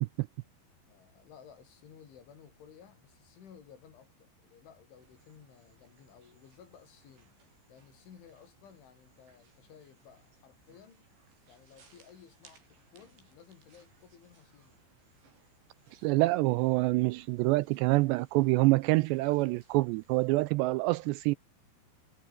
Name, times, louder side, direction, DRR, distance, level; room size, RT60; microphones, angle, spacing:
voice 1, 0.9-7.4 7.7-11.1 11.5-14.8, left 8 dB, 80° left, 6.4 m, -56 dB
sound 1, 5.0-20.5, right 5 dB, 65° right, 9.3 m, -66 dB
voice 2, 15.9-21.4, right 21 dB, 85° right, 2.5 m, -26 dB
omnidirectional pair, 5.4 m